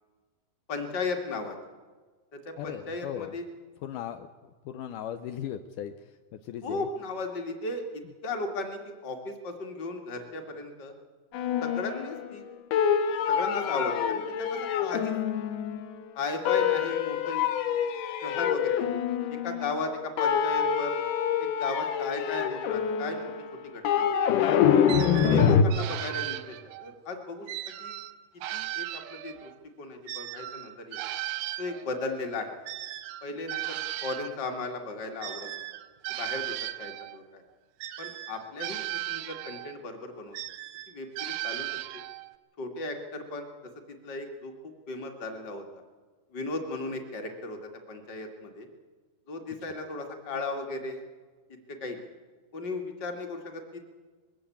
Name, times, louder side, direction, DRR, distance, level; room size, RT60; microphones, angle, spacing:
voice 1, 0.7-1.6 2.3-3.4 6.6-7.8 8.2-10.9 11.6-12.5 13.3-15.2 16.1-17.5 18.2-18.9 19.3-20.9 21.4-23.2 23.7-24.1 24.4-24.5 25.3-27.5 27.8-28.0 28.5-29.5 29.8-31.0 31.6-32.5 33.2-35.5 36.1-37.4 38.0-40.4 40.9-41.7 42.6-43.5 44.0-44.5 44.9-45.6 46.3-48.7 49.3-51.0 51.7-52.1 52.5-53.8, left 3 dB, 35° left, 4 dB, 2.1 m, -36 dB
voice 2, 2.6-3.4 3.8-6.9, left 10 dB, 85° left, 9 dB, 1.8 m, -38 dB
sound 1, 11.3-12.4 12.7-16.0 16.5-19.9 20.2-25.6, left 8 dB, 70° left, 2.3 m, -26 dB
sound 2, 24.9-26.9 27.5-29.6 30.1-34.4 35.2-37.2 37.8-39.8 40.3-42.3, right 16 dB, 90° right, 3.1 m, -37 dB
21.5 x 15.5 x 8.6 m, 1.4 s
omnidirectional pair, 4.7 m